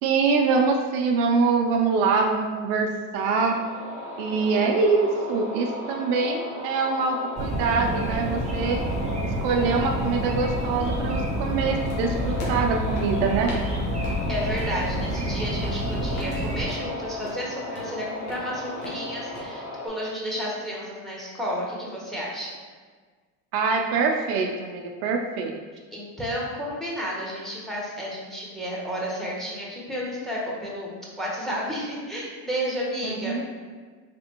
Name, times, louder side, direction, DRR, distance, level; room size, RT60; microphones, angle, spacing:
voice 1, 0.0-3.5 4.2-8.8 9.2-13.5 23.5-25.6 33.0-33.4, right 4 dB, 70° right, 2 dB, 0.6 m, -24 dB
sound 1, 3.1-19.9, left 2 dB, 45° left, 1.4 m, -36 dB
sound 2, 7.4-16.6, right 1 dB, 20° right, 0.6 m, -28 dB
sound 3, 11.9-19.4, left 1 dB, 80° left, 1.1 m, -42 dB
voice 2, 14.3-22.5 25.9-33.4, equal, ahead, -4 dB, 1.0 m, -32 dB
3.4 x 3.3 x 2.9 m, 1.5 s
supercardioid pair, 90°, 40 cm